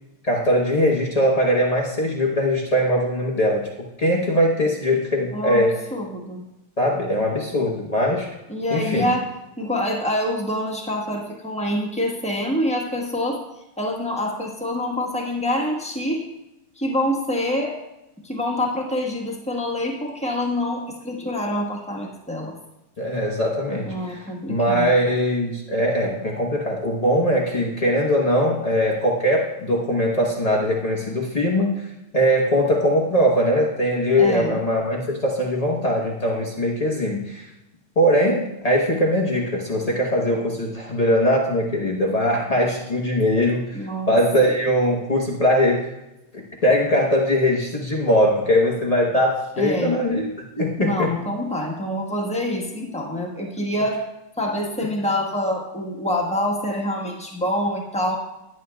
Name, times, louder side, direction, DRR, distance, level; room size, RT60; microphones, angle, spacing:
voice 1, 0.2-3.7 4.0-5.8 6.8-8.3 8.7-9.1 23.0-31.9 32.1-37.4 38.0-45.9 46.3-50.3 50.6-51.1, equal, 80° left, -3 dB, 0.3 m, -21 dB
voice 2, 5.3-5.7 5.9-6.4 8.5-9.2 9.6-13.4 13.8-16.2 16.8-17.7 18.2-22.6 23.9-24.9 34.2-34.6 43.7-44.2 49.5-50.0 50.8-54.0 54.4-58.2, left 1 dB, 5° left, -1 dB, 0.6 m, -26 dB
11.0 x 9.2 x 2.3 m, 0.91 s
omnidirectional pair, 2.4 m